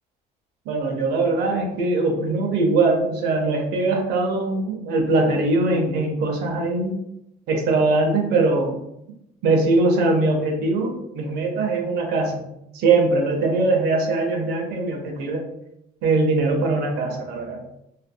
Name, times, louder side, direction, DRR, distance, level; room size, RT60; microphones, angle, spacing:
voice 1, 0.7-7.0 7.5-8.8 9.4-12.4 12.7-15.4 16.0-17.6, right 3 dB, 80° right, 2 dB, 0.6 m, -21 dB
2.6 x 2.5 x 2.2 m, 0.82 s
cardioid pair, 110°, 17 cm